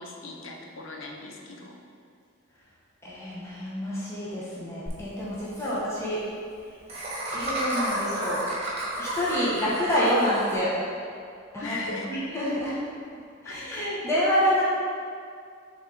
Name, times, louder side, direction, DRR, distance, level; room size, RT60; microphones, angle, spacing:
voice 1, 0.0-1.8 11.6-12.1 13.4-13.8, left 3 dB, 70° left, 1 dB, 0.7 m, -38 dB
voice 2, 3.0-6.2 7.3-8.4 9.0-10.7 11.5-12.9 13.4-14.6, equal, 15° left, -8 dB, 0.9 m, -27 dB
Laughter, 4.9-5.0 5.2-5.3 5.5-5.7 6.9-10.6, right 1 dB, 30° right, 1.5 m, -31 dB
7.1 x 3.7 x 3.8 m, 2.3 s
head